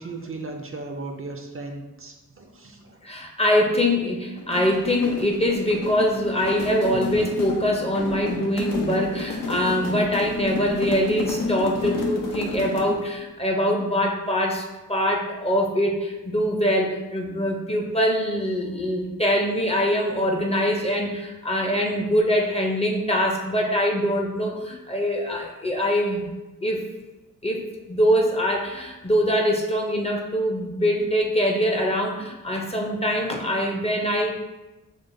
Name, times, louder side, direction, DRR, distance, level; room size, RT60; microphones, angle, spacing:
voice 1, 0.0-3.0 6.9-7.0, right 3 dB, 40° right, 3 dB, 0.5 m, -36 dB
voice 2, 3.0-26.3 26.6-26.9 27.4-34.3, equal, 20° left, 0 dB, 0.5 m, -23 dB
sound 1, 4.4-13.1, left 4 dB, 90° left, 0.6 m, -31 dB
6.2 x 2.2 x 2.6 m, 1.1 s
wide cardioid pair, 95°, 33 cm